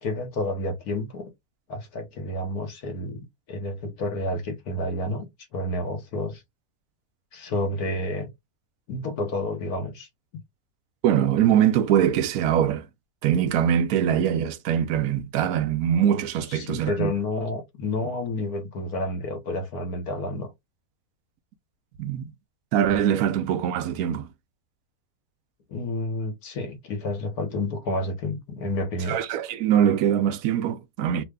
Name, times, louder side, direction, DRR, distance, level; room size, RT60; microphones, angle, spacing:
voice 1, 0.0-1.3 1.7-3.2 3.5-5.3 5.5-6.4 7.3-8.3 8.9-10.1 16.5-20.5 25.7-29.2, left 2 dB, 70° left, 1.4 m, -30 dB
voice 2, 11.0-12.9 13.2-17.1 22.0-22.3 22.7-24.3 29.1-31.2, right 9 dB, 75° right, 1.0 m, -22 dB
3.2 x 2.1 x 3.5 m
omnidirectional pair, 1.7 m